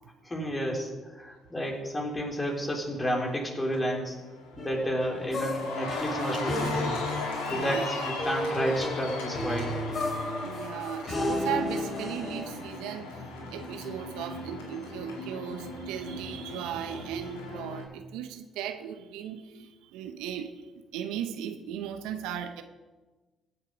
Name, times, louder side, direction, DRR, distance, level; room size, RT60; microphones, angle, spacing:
voice 1, 0.2-4.2 4.6-7.0 7.5-9.7, equal, 25° left, -1 dB, 3.7 m, -31 dB
Cheering, 3.0-3.4 3.7-17.8, left 2 dB, 85° left, 2.6 m, -38 dB
sound 1, 4.6-12.5, left 1 dB, 45° left, 3.6 m, -33 dB
voice 2, 7.5-7.9 10.1-13.2 13.5-22.6, right 9 dB, 80° right, 8 dB, 0.7 m, -37 dB
16.0 x 7.4 x 5.1 m, 1.2 s
hypercardioid pair, 50°, 0 cm